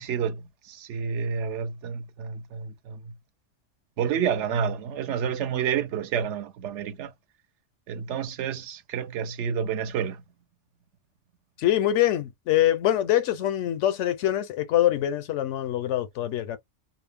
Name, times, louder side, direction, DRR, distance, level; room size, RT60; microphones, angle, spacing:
voice 1, 0.0-3.1 4.0-7.1 7.9-10.2, right 7 dB, 80° right, 0.9 m, -29 dB
voice 2, 11.6-16.6, left 12 dB, 90° left, 0.9 m, -24 dB
2.3 x 2.0 x 3.2 m
omnidirectional pair, 1.2 m